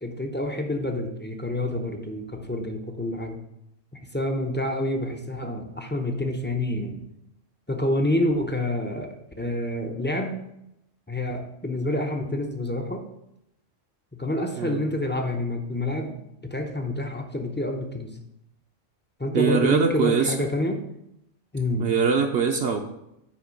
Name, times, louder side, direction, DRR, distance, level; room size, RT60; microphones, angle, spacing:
voice 1, 0.0-3.4 4.1-7.0 7.7-10.4 11.1-13.0 14.1-18.1 19.2-20.8 21.5-21.9, left 1 dB, 15° left, 4 dB, 0.4 m, -28 dB
voice 2, 19.3-20.3 21.8-22.8, right 6 dB, 70° right, 3 dB, 0.8 m, -22 dB
5.8 x 4.5 x 6.3 m, 0.83 s
omnidirectional pair, 1.3 m